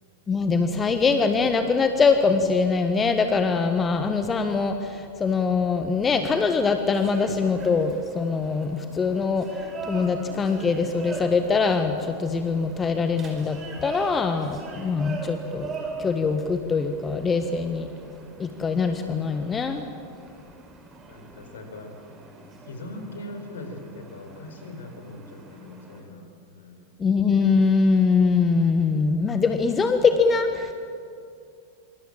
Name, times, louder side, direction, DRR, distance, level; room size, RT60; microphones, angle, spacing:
voice 1, 0.3-15.7 16.0-17.9 18.4-19.9 27.0-30.7, left 4 dB, 20° left, 8 dB, 1.4 m, -23 dB
sound 1, 6.9-26.0, right 4 dB, 25° right, 5.0 m, -41 dB
voice 2, 21.1-21.9 22.7-26.9, left 1 dB, 65° left, 5 dB, 5.0 m, -41 dB
26.0 x 25.0 x 7.7 m, 2.4 s
figure-of-eight pair, 90°, 0 cm